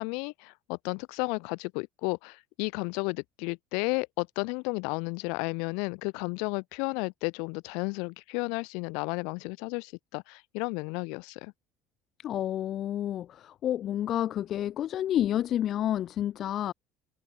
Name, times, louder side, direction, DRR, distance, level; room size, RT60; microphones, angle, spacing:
voice 1, 0.0-11.5, left 34 dB, 85° left, 2.0 m, -33 dB
voice 2, 12.2-16.7, left 11 dB, 45° left, 0.5 m, -29 dB
cardioid pair, 150°, 0 cm